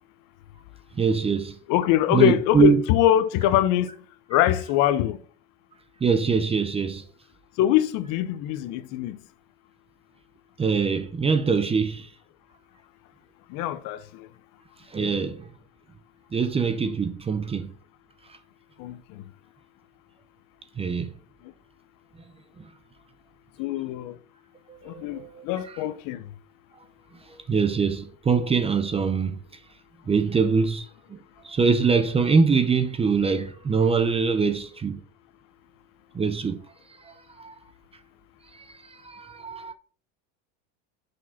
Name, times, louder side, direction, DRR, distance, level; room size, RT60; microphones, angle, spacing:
voice 1, 0.9-1.6 2.1-2.8 6.0-7.1 10.6-12.1 14.9-15.5 16.3-17.7 20.8-21.1 22.6-22.7 24.7-25.4 27.3-29.4 30.1-31.2 31.4-35.0 36.1-36.6 37.0-37.6 38.5-39.7, right 5 dB, 15° right, 0.6 m, -23 dB
voice 2, 1.7-3.9 4.3-5.2 7.6-9.2 13.5-14.3 18.8-19.0 23.6-24.2 24.8-26.2, left 12 dB, 55° left, 0.8 m, -23 dB
6.3 x 4.8 x 5.6 m
supercardioid pair, 130°, 39 cm